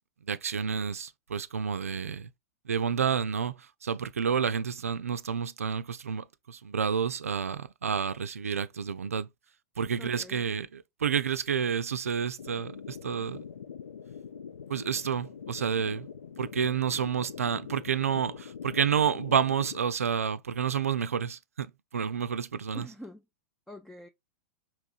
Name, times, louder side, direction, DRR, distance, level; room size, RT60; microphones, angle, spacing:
voice 1, 0.3-2.3 2.7-3.5 3.8-9.3 9.8-13.4 14.7-16.1 16.4-21.7 21.9-22.9, right 7 dB, 80° right, 0.4 m, -29 dB
voice 2, 10.0-10.7 22.7-23.3 23.7-24.1, equal, 5° left, 0.4 m, -46 dB
sound 1, 12.4-19.8, left 7 dB, 75° left, 0.4 m, -44 dB
4.8 x 3.0 x 2.5 m
figure-of-eight pair, 100°, 8 cm